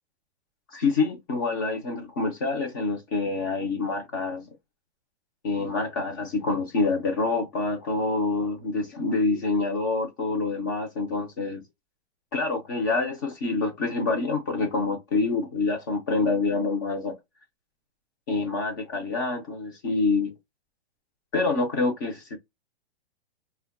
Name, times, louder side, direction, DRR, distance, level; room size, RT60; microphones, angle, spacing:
voice 1, 0.7-4.5 5.4-11.6 12.3-17.1 18.3-20.3 21.3-22.4, left 3 dB, 20° left, 0.4 m, -26 dB
2.2 x 2.1 x 3.5 m
hypercardioid pair, 165°, 32 cm